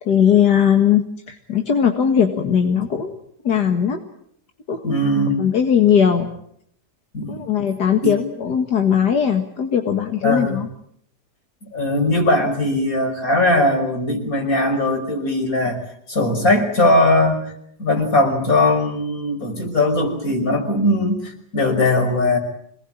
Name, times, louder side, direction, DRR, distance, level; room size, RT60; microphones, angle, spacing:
voice 1, 0.0-3.2 3.4-4.0 4.7-5.0 5.4-6.3 7.3-10.7, left 8 dB, 80° left, 4 dB, 2.3 m, -19 dB
voice 2, 4.8-5.4 7.1-7.4 8.0-8.1 10.2-10.6 11.7-15.8 16.1-17.4 17.8-22.4, left 1 dB, 55° left, 4 dB, 6.1 m, -19 dB
26.5 x 20.0 x 8.8 m, 0.71 s
omnidirectional pair, 1.7 m